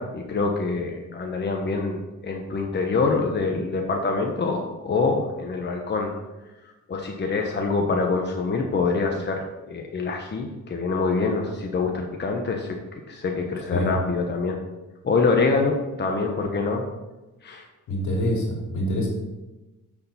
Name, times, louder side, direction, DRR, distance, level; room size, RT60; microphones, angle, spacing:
voice 1, 0.0-6.1 6.9-12.8 13.1-14.6 15.0-16.8 17.4-17.6, left 4 dB, 35° left, 1 dB, 1.2 m, -25 dB
voice 2, 17.9-19.1, equal, 75° left, -1 dB, 3.0 m, -25 dB
7.6 x 7.0 x 4.3 m, 1.1 s
cardioid pair, 90°, 30 cm